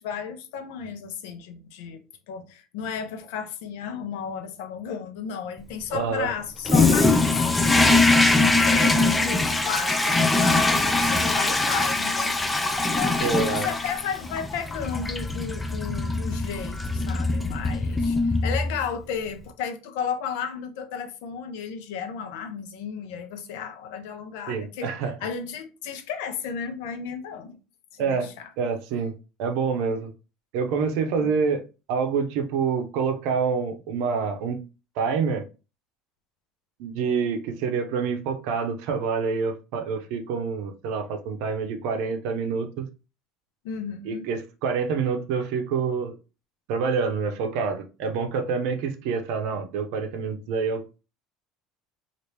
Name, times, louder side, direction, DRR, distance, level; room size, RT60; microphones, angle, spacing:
voice 1, 0.0-2.0 2.3-8.0 8.6-12.3 12.9-24.9 25.2-27.6 27.9-28.5 31.2-31.4 43.6-44.3, left 7 dB, 85° left, 0.6 m, -34 dB
voice 2, 5.9-6.3 12.4-12.5 13.2-13.7 24.5-25.1 28.0-28.3 28.6-29.1 29.4-30.1 30.5-31.6 31.9-34.6 35.0-35.4 36.8-42.9 44.0-46.2 46.7-51.0, right 5 dB, 70° right, 0.6 m, -27 dB
Toilet flush, 6.6-19.0, left 2 dB, 10° left, 0.3 m, -22 dB
2.9 x 2.5 x 3.3 m
cardioid pair, 145°, 0 cm